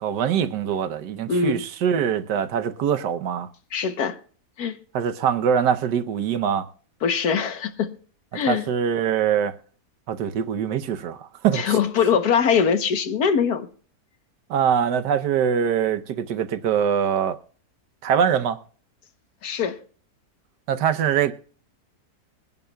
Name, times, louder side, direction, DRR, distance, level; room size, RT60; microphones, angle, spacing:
voice 1, 0.0-3.5 4.9-6.7 8.5-9.5 10.1-11.8 14.5-17.4 18.0-18.6 20.7-21.3, right 8 dB, 85° right, 1.4 m, -23 dB
voice 2, 1.3-1.6 3.7-4.2 4.6-4.8 7.0-7.9 8.3-8.6 11.5-13.7 19.4-19.8, left 6 dB, 70° left, 1.5 m, -22 dB
22.5 x 11.0 x 2.3 m
omnidirectional pair, 1.8 m